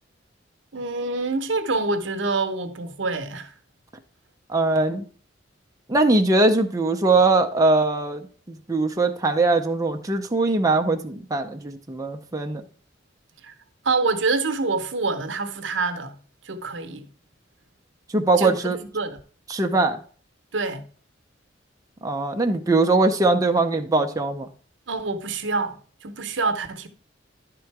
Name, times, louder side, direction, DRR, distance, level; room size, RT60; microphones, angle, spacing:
voice 1, 0.7-3.5 13.4-13.5 13.8-16.1 16.4-17.1 18.4-19.2 20.5-20.8 24.9-26.9, right 3 dB, 70° right, 0.9 m, -26 dB
voice 2, 4.5-5.0 5.9-12.6 18.1-18.8 19.5-20.0 22.0-24.5, right 2 dB, 20° right, 0.6 m, -21 dB
10.5 x 3.8 x 4.6 m
head